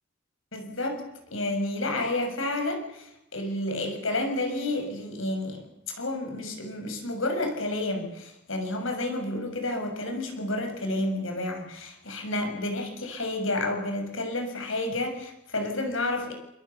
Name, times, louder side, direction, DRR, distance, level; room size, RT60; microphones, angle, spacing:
voice 1, 0.5-1.0 1.3-5.6 5.9-16.3, left 2 dB, 65° left, 4 dB, 6.7 m, -30 dB
27.5 x 24.0 x 7.1 m, 0.86 s
head